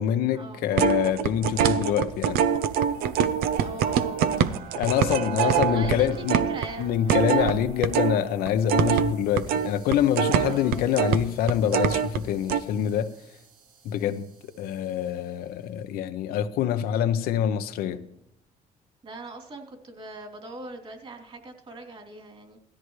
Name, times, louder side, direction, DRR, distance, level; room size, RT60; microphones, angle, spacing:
voice 1, 0.0-2.4 4.8-6.4 6.8-13.2 13.8-14.3 14.6-18.0, left 10 dB, 75° left, 0.8 m, -25 dB
sound 1, 0.7-8.2 8.5-12.2 12.5-12.6, right 8 dB, 85° right, 0.7 m, -24 dB
sound 2, 2.1-15.5, right 4 dB, 65° right, 6.4 m, -50 dB
voice 2, 3.6-4.7 5.4-7.7 10.4-10.8 19.0-22.6, right 2 dB, 35° right, 3.0 m, -41 dB
17.0 x 13.5 x 3.2 m
cardioid pair, 90°, 15 cm